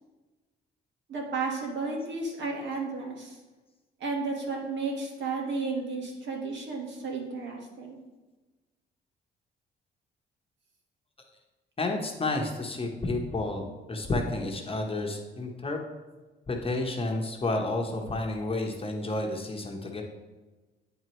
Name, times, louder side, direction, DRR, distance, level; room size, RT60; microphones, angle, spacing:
voice 1, 1.1-3.4 4.0-8.0, right 3 dB, 65° right, 0 dB, 1.5 m, -33 dB
voice 2, 11.8-13.6 13.9-15.8 16.5-20.0, left 2 dB, 30° left, 2 dB, 1.0 m, -30 dB
8.8 x 4.5 x 3.1 m, 1.2 s
cardioid pair, 90°, 20 cm